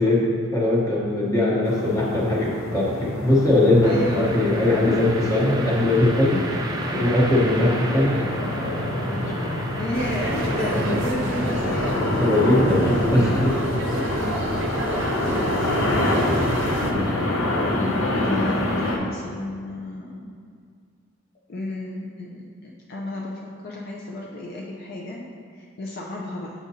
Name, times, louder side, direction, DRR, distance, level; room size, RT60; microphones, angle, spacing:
voice 1, 0.0-6.4 6.9-8.3 8.6-8.9 9.2-9.3 10.8-11.0 12.2-13.6 15.2-15.4 16.1-16.4 16.9-17.2 17.8-18.0, left 1 dB, 15° left, -4 dB, 0.9 m, -21 dB
sound 1, 1.6-19.0, left 1 dB, 90° left, 0.8 m, -26 dB
voice 2, 3.8-4.3 9.8-11.9 14.0-14.6 15.2-15.4 15.8-16.2 16.6-16.7 18.1-20.3 21.5-25.2 25.5-26.5, left 1 dB, 50° left, -2 dB, 0.5 m, -32 dB
sound 2, 3.8-11.9, right 2 dB, 20° right, 0.3 m, -35 dB
sound 3, 9.9-16.9, right 2 dB, 65° right, 0.6 m, -31 dB
7.2 x 5.1 x 2.7 m, 2.1 s
head